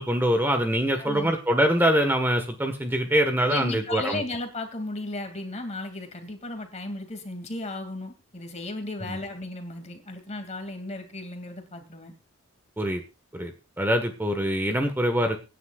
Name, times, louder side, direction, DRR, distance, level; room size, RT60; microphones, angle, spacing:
voice 1, 0.0-4.2 9.1-9.2 12.8-13.0 13.3-15.4, equal, 10° right, 6 dB, 1.4 m, -24 dB
voice 2, 0.9-1.3 3.5-12.1, left 2 dB, 35° left, 6 dB, 2.5 m, -35 dB
25.0 x 10.0 x 2.4 m, 0.29 s
head